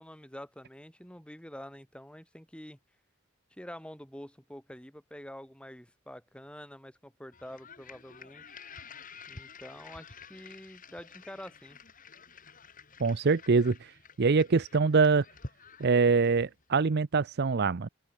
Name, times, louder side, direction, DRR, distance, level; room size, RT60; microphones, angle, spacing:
voice 1, 0.0-2.8 3.5-8.6 9.3-11.8, equal, 5° left, 5.2 m, -47 dB
sound 1, 7.3-16.6, left 4 dB, 45° left, 4.1 m, -50 dB
voice 2, 13.0-13.8 14.2-15.2 15.8-17.9, right 4 dB, 55° right, 0.6 m, -24 dB
open air
head